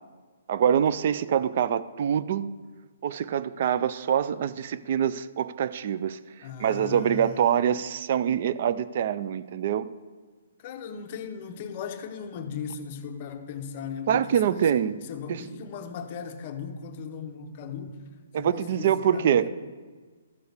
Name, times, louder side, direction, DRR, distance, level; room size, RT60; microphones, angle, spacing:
voice 1, 0.5-2.5 3.0-6.2 6.6-9.9 14.1-15.0 15.3-15.4 18.3-19.5, right 9 dB, 30° right, 0.3 m, -25 dB
voice 2, 6.4-7.4 10.6-14.7 15.1-18.1 18.4-19.5, left 6 dB, 25° left, 0.6 m, -37 dB
13.0 x 5.0 x 6.6 m
hypercardioid pair, 180°, 0 cm